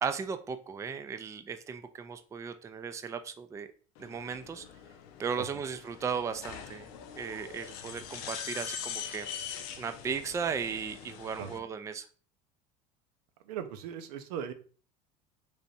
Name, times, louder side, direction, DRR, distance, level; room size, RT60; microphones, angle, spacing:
voice 1, 0.0-3.7 4.0-4.7 5.2-9.3 9.8-12.1, right 6 dB, 15° right, 9 dB, 0.3 m, -36 dB
sound 1, 4.0-11.6, left 8 dB, 85° left, 0.6 m, -43 dB
voice 2, 13.5-14.5, right 8 dB, 85° right, 8 dB, 0.6 m, -38 dB
3.4 x 2.6 x 4.0 m, 0.40 s
supercardioid pair, 105°, 19 cm